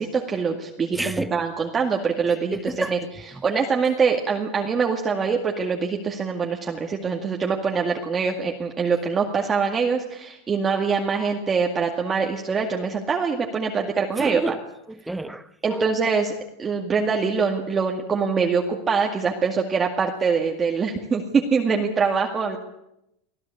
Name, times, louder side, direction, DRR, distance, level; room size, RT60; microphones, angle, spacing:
voice 1, 0.0-3.0 3.4-14.5 15.6-22.6, right 5 dB, 25° right, 1 dB, 2.2 m, -24 dB
voice 2, 0.9-1.3 2.5-3.0 14.2-14.6 14.9-15.9, right 1 dB, 5° right, 12 dB, 1.1 m, -30 dB
25.0 x 15.0 x 8.5 m, 0.84 s
supercardioid pair, 125°, 0 cm